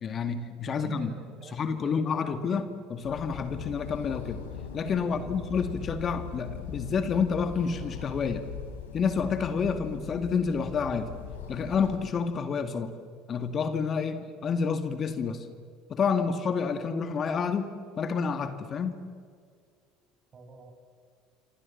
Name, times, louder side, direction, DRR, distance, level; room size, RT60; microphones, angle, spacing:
voice 1, 0.0-1.1 1.5-4.4 4.7-8.4 8.9-11.1 11.5-12.9 13.3-15.5 15.9-19.0, left 5 dB, 40° left, 9 dB, 2.2 m, -29 dB
voice 2, 0.7-2.4 5.0-5.4 20.3-20.7, right 4 dB, 40° right, 5 dB, 7.4 m, -46 dB
sound 1, 3.0-12.0, left 8 dB, 80° left, 3.6 m, -40 dB
28.0 x 26.5 x 7.4 m, 2.2 s
hypercardioid pair, 65°, 0 cm